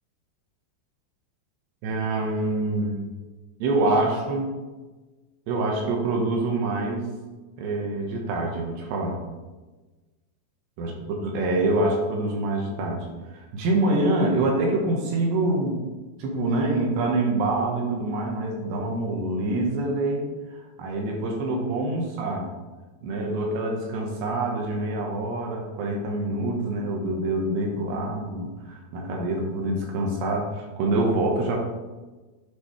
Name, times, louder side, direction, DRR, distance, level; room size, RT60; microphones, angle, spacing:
voice 1, 1.8-3.0 3.6-4.5 5.5-7.1 7.6-9.2 10.8-10.9 11.2-15.8 16.2-22.4 23.0-31.6, right 2 dB, 75° right, 0 dB, 3.5 m, -26 dB
10.5 x 8.1 x 3.3 m, 1.2 s
omnidirectional pair, 5.1 m